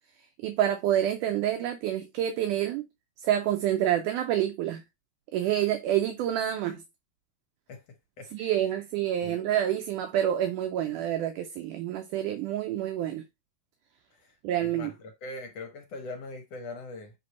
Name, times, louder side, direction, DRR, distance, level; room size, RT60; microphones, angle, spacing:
voice 1, 0.4-2.8 3.2-4.8 5.3-6.8 8.3-13.2 14.4-14.9, right 11 dB, 75° right, 1.9 m, -28 dB
voice 2, 8.2-8.7 9.2-9.4 14.1-17.1, left 2 dB, 70° left, 1.5 m, -42 dB
7.9 x 3.4 x 4.1 m
omnidirectional pair, 4.1 m